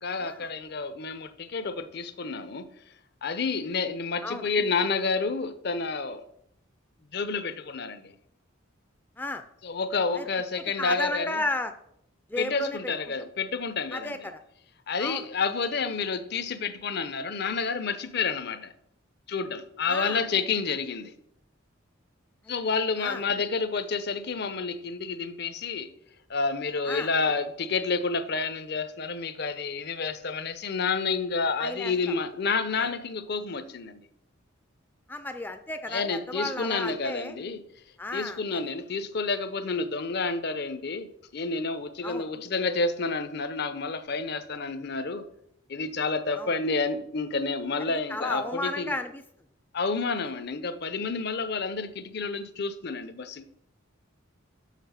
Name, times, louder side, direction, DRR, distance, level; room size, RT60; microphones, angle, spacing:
voice 1, 0.0-2.7 3.2-6.2 7.1-8.1 9.6-11.4 12.4-14.3 14.9-18.7 19.3-21.1 22.5-25.9 26.3-34.1 35.9-37.6 38.1-45.3 45.7-48.9 49.7-53.4, left 4 dB, 55° left, 0.6 m, -29 dB
voice 2, 10.6-11.7 12.3-13.1 13.9-14.4 15.0-15.3 19.9-20.2 22.4-22.7 23.0-23.2 26.9-27.1 31.6-31.9 32.7-32.9 35.1-37.3 38.0-38.6 42.0-42.3 46.4-46.5 47.9-49.2, left 2 dB, 10° left, 0.4 m, -34 dB
6.6 x 5.7 x 6.4 m
head